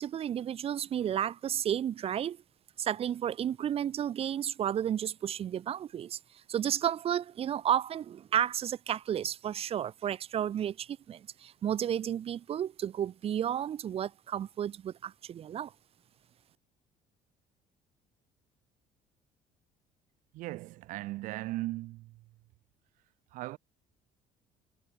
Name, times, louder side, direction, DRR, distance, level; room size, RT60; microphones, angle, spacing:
voice 1, 0.0-2.4 2.8-6.2 6.5-15.7, right 10 dB, 45° right, 2.5 m, -32 dB
voice 2, 20.3-22.3 23.3-23.6, right 18 dB, 80° right, 5.7 m, -38 dB
cardioid pair, 120°, 13 cm